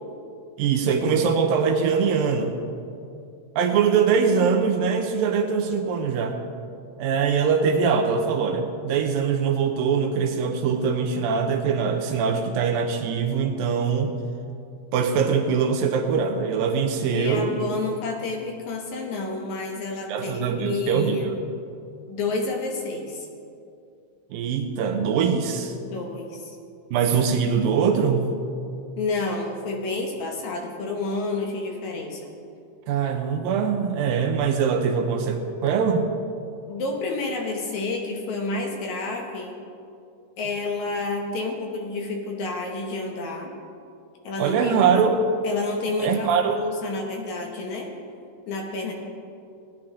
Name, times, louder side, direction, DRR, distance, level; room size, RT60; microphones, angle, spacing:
voice 1, 0.6-2.5 3.6-6.4 7.0-14.1 14.9-17.7 20.1-21.3 24.3-25.7 26.9-28.4 32.9-36.1 44.4-45.2 46.0-46.6, right 6 dB, 75° right, 4 dB, 2.3 m, -22 dB
voice 2, 17.1-21.3 22.1-23.3 25.8-26.5 29.0-32.3 36.7-39.6 40.4-43.5 44.2-44.8 45.4-47.9 48.5-48.9, left 3 dB, 65° left, 1 dB, 2.0 m, -29 dB
18.0 x 10.0 x 3.7 m, 2.5 s
omnidirectional pair, 4.5 m